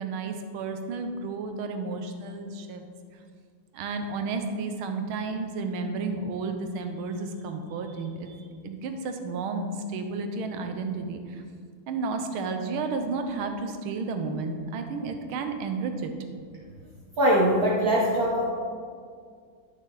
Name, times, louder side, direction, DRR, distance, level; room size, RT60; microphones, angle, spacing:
voice 1, 0.0-2.9 3.7-11.4 11.9-16.1, right 4 dB, 80° right, 6 dB, 1.6 m, -32 dB
voice 2, 17.2-18.5, equal, 55° right, -4 dB, 1.3 m, -22 dB
11.0 x 6.4 x 3.8 m, 2.1 s
omnidirectional pair, 2.3 m